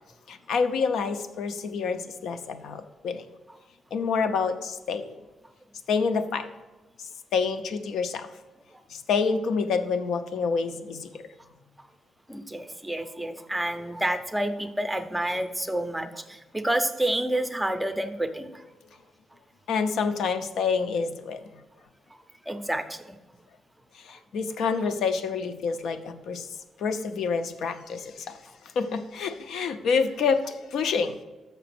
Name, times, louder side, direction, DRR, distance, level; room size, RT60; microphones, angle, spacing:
voice 1, 0.3-3.2 3.9-5.2 5.9-6.5 7.3-8.3 8.9-11.1 19.7-21.4 24.0-26.5 26.8-28.4 28.8-31.2, left 5 dB, 80° left, 8 dB, 0.6 m, -27 dB
voice 2, 12.3-18.6 22.5-23.2, right 1 dB, 5° right, 9 dB, 0.5 m, -29 dB
6.8 x 6.0 x 6.0 m, 1.2 s
wide cardioid pair, 165°, 0 cm